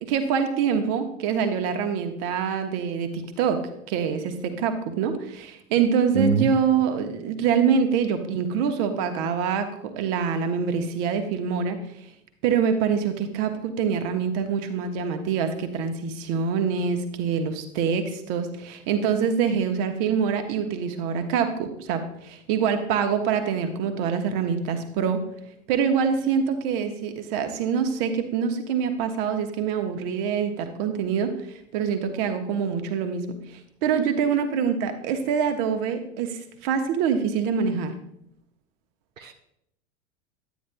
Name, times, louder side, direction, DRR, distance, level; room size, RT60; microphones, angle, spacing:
voice 1, 0.0-3.6 3.9-11.8 12.4-25.2 25.7-37.9, right 6 dB, 45° right, 7 dB, 1.1 m, -25 dB
voice 2, 6.1-6.5 39.2-39.3, right 5 dB, 90° right, 5 dB, 0.6 m, -23 dB
9.7 x 9.1 x 2.2 m, 0.77 s
figure-of-eight pair, 90°, 38 cm